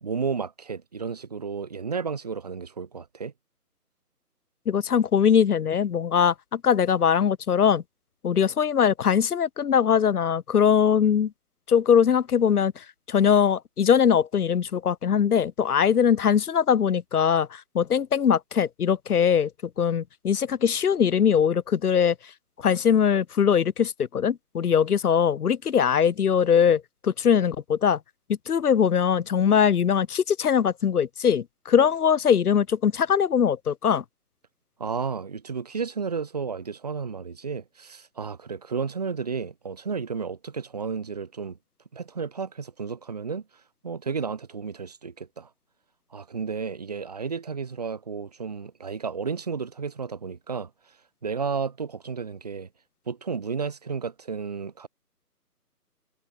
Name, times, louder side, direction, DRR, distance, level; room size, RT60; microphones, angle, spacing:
voice 1, 0.0-3.3 34.8-41.6 41.9-43.4 43.8-45.5 46.1-50.7 51.2-52.7 53.1-54.9, right 5 dB, 25° right, 1.3 m, -32 dB
voice 2, 4.7-7.8 8.2-11.3 11.7-19.5 19.8-22.3 22.6-28.0 28.5-34.0, left 7 dB, 70° left, 0.6 m, -21 dB
figure-of-eight pair, 150°, 48 cm